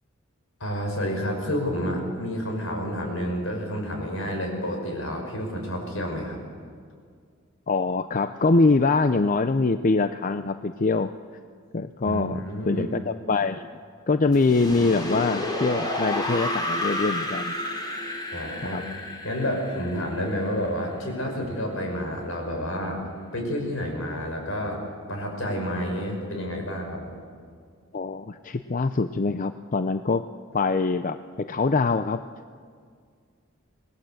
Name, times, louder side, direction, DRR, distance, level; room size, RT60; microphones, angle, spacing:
voice 1, 0.6-6.4 12.0-12.9 18.3-18.8 19.2-23.0 23.3-24.8 25.1-27.1, equal, 75° left, 2 dB, 6.1 m, -29 dB
voice 2, 7.7-11.1 11.7-12.4 12.7-13.7 14.1-17.6 18.7-18.8 27.9-30.2 30.5-32.2, left 3 dB, 40° left, 10 dB, 0.6 m, -24 dB
sound 1, 14.3-21.2, left 1 dB, 20° left, 3.5 m, -31 dB
26.5 x 19.5 x 7.8 m, 2.1 s
head